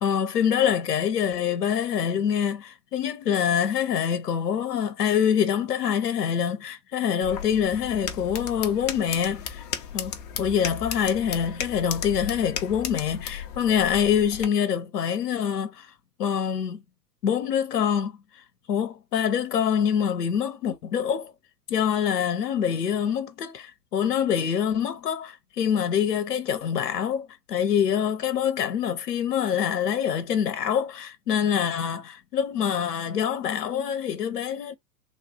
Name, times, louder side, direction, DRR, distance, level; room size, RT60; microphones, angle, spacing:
voice 1, 0.0-9.6 9.9-10.1 10.4-15.9 16.2-16.8 17.2-18.4 18.7-21.3 21.7-34.8, left 8 dB, 70° left, 0.7 m, -25 dB
sound 1, 7.2-14.5, left 8 dB, 25° left, 0.4 m, -35 dB
3.2 x 2.3 x 4.1 m
figure-of-eight pair, 100°, 48 cm